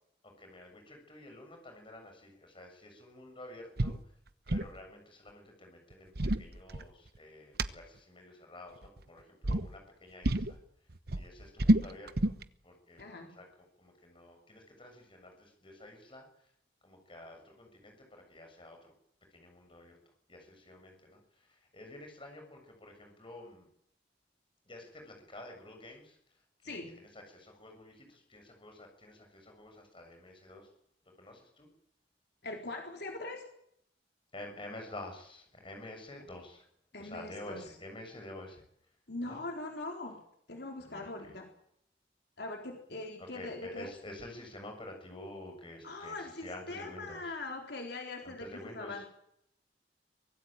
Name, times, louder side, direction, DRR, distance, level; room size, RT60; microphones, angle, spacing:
voice 1, 0.2-4.0 4.5-10.6 11.1-12.3 12.6-16.3 16.8-18.9 19.3-20.0 20.3-23.7 24.7-26.2 26.6-30.7 31.2-31.7 34.3-36.6 37.0-38.6 39.2-39.4 40.8-41.4 43.3-47.4 48.2-49.0, left 1 dB, 30° left, 3 dB, 7.3 m, -49 dB
sound 1, 3.8-4.0 4.3-4.8 5.9-7.2 7.6-7.7 8.8-9.1 9.4-9.7 10.2-10.6 10.9-12.4, right 1 dB, 60° right, 1.1 m, -29 dB
voice 2, 13.0-13.4 26.6-27.0 32.4-33.4 36.9-37.7 39.1-40.2 40.5-41.5 42.4-43.9 45.8-49.1, left 2 dB, 65° left, 2 dB, 4.0 m, -41 dB
24.5 x 18.5 x 9.0 m, 0.73 s
head